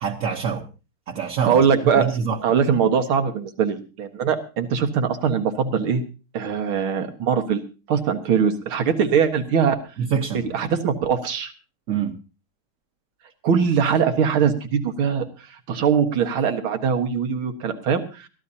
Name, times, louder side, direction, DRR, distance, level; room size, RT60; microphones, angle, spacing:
voice 1, 0.0-0.6 1.1-1.6 1.9-2.4 10.0-10.7 11.9-12.2, right 7 dB, 50° right, 1 dB, 1.2 m, -25 dB
voice 2, 1.4-2.1 2.4-6.0 6.3-7.6 7.9-9.8 10.3-11.5 13.4-15.3 15.7-18.3, right 7 dB, 85° right, 6 dB, 2.4 m, -21 dB
22.0 x 14.0 x 2.8 m, 0.32 s
omnidirectional pair, 2.2 m